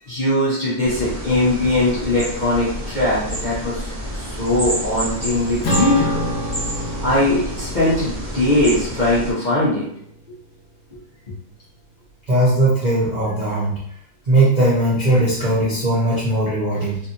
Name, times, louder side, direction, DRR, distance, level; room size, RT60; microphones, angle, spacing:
voice 1, 0.1-6.3 7.0-9.9, left 1 dB, 50° left, -10 dB, 0.5 m, -20 dB
sound 1, 0.8-9.3, right 1 dB, 10° right, 0.7 m, -29 dB
Acoustic guitar / Strum, 5.6-10.4, left 1 dB, 70° left, 1.3 m, -28 dB
voice 2, 12.3-13.8 14.2-17.0, right 1 dB, 85° right, -8 dB, 0.4 m, -18 dB
3.2 x 2.7 x 2.6 m, 0.70 s
omnidirectional pair, 2.0 m